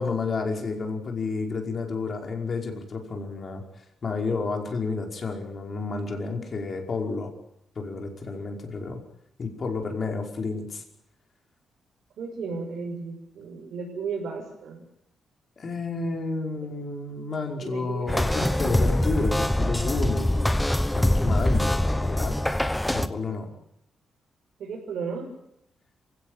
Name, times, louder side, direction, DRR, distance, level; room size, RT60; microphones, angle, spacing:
voice 1, 0.0-3.6 4.0-7.3 7.7-9.0 9.4-10.8 15.6-20.6 20.9-22.4 22.9-23.5, left 4 dB, 40° left, 3 dB, 5.3 m, -31 dB
voice 2, 12.2-14.8 16.6-16.7 17.5-18.6 24.6-25.3, right 5 dB, 70° right, -2 dB, 6.3 m, -35 dB
sound 1, 18.1-23.1, left 1 dB, 5° left, 1.2 m, -24 dB
27.5 x 16.5 x 9.1 m, 0.80 s
cardioid pair, 140°, 0 cm